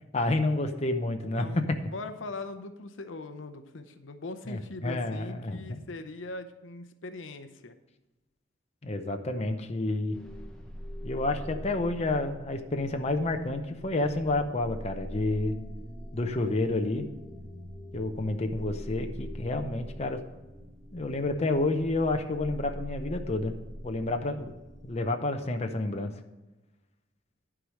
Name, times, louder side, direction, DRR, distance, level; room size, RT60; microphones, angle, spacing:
voice 1, 0.1-1.5 4.5-5.8 8.8-10.2 11.0-15.5 16.1-17.1 17.9-20.2 20.9-23.6 23.8-24.5 24.8-26.1, left 2 dB, 35° left, 5 dB, 0.7 m, -29 dB
voice 2, 1.3-7.7, left 2 dB, 75° left, 9 dB, 0.7 m, -41 dB
sound 1, 10.1-25.0, equal, 5° left, 1.0 m, -43 dB
11.0 x 4.9 x 6.4 m, 1.1 s
head